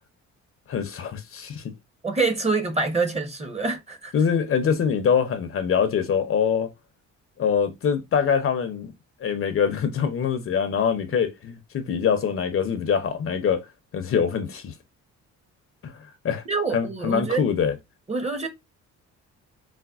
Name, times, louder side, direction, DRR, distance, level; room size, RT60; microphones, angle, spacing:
voice 1, 0.7-1.6 4.1-6.7 7.4-8.9 9.2-13.6 13.9-14.7 15.8-15.9 16.2-16.4 16.7-17.7, left 7 dB, 45° left, 0.6 m, -24 dB
voice 2, 2.0-4.1 16.5-17.5 18.1-18.5, right 4 dB, 20° right, 0.8 m, -26 dB
4.1 x 2.1 x 2.3 m
cardioid pair, 90°, 30 cm